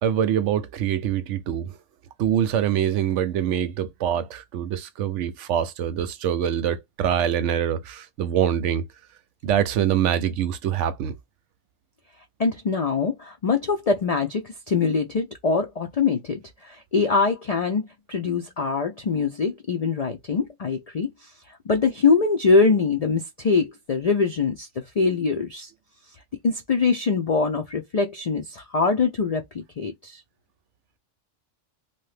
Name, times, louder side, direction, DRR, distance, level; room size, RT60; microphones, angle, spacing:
voice 1, 0.0-1.8 2.2-8.9 9.4-11.1, right 9 dB, 75° right, 0.9 m, -24 dB
voice 2, 12.4-21.3 21.7-24.7 25.0-25.7 26.4-30.2, left 4 dB, 65° left, 0.3 m, -23 dB
2.7 x 2.3 x 3.2 m
omnidirectional pair, 1.3 m